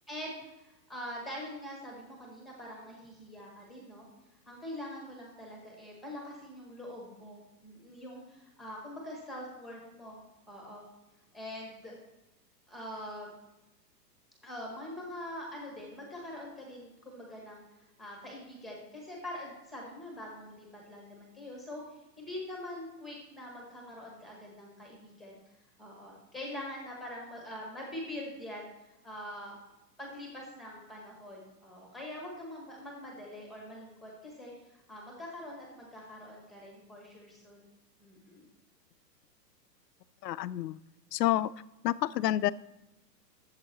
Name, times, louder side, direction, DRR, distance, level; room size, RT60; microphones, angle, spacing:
voice 1, 0.1-4.1 4.5-10.9 11.3-12.0 12.7-13.4 14.4-25.4 25.8-29.6 30.0-37.7 38.0-38.5, left 1 dB, ahead, -2 dB, 0.9 m, -44 dB
voice 2, 40.2-40.8 41.1-41.5 41.8-42.5, left 14 dB, 75° left, 17 dB, 0.5 m, -28 dB
12.5 x 7.5 x 3.0 m, 0.96 s
hypercardioid pair, 170°, 50 cm